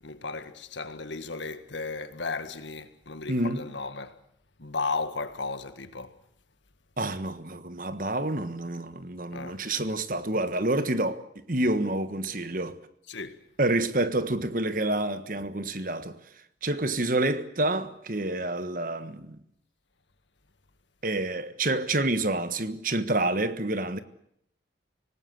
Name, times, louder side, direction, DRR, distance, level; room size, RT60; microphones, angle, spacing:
voice 1, 0.0-4.2 4.6-6.2 9.3-9.6 13.1-13.4, left 4 dB, 85° left, 1.8 m, -35 dB
voice 2, 3.3-3.6 7.0-11.2 11.5-12.8 13.6-16.2 16.6-19.4 21.0-24.0, right 2 dB, 50° right, 1.4 m, -28 dB
26.0 x 19.0 x 7.8 m
head